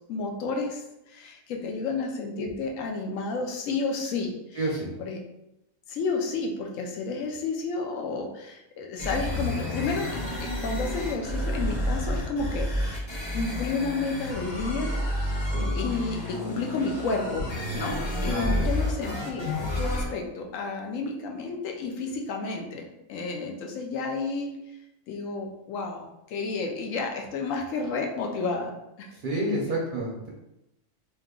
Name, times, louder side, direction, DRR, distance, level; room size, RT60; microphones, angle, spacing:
voice 1, 0.0-4.6 5.0-5.2 5.9-13.0 13.3-14.9 15.7-17.5 17.7-22.8 23.1-24.6 25.1-28.7 29.0-29.1, left 4 dB, 75° left, 2 dB, 1.0 m, -31 dB
voice 2, 4.6-4.9 15.4-15.7 18.2-18.7 29.2-30.3, right 1 dB, 55° right, -2 dB, 0.6 m, -30 dB
sound 1, 9.0-20.1, left 1 dB, 25° left, 0.8 m, -30 dB
2.8 x 2.3 x 3.6 m, 0.88 s
omnidirectional pair, 1.4 m